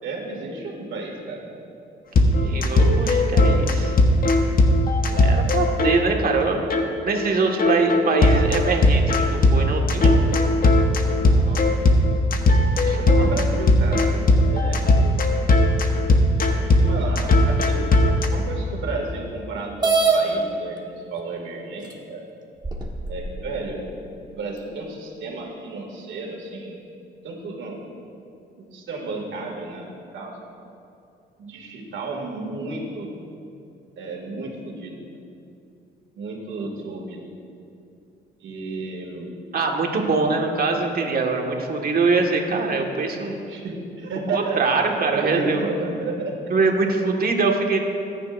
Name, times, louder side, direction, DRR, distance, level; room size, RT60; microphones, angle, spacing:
voice 1, 0.0-1.5 5.1-5.5 11.1-11.7 12.8-15.3 16.8-17.9 18.3-22.3 23.1-24.0 24.3-26.8 27.2-27.9 28.6-30.4 31.4-33.1 34.0-35.0 36.1-37.2 38.4-39.3 43.1-44.8 45.2-46.5, right 3 dB, 75° right, 0 dB, 2.5 m, -32 dB
sound 1, 2.1-6.4 6.7-6.8 7.2-7.3 7.6-18.3, left 2 dB, 45° left, 1.2 m, -18 dB
voice 2, 2.2-4.0 5.2-6.8 7.0-9.0 9.3-10.2 12.8-13.4 39.5-43.3 44.3-45.6 46.5-47.8, right 4 dB, 50° right, 1 dB, 1.8 m, -23 dB
sound 2, 19.8-20.2 21.2-21.3 21.9-22.0 22.6-23.3, right 4 dB, 20° right, 1.5 m, -21 dB
21.0 x 10.0 x 2.6 m, 2.6 s
cardioid pair, 90°, 20 cm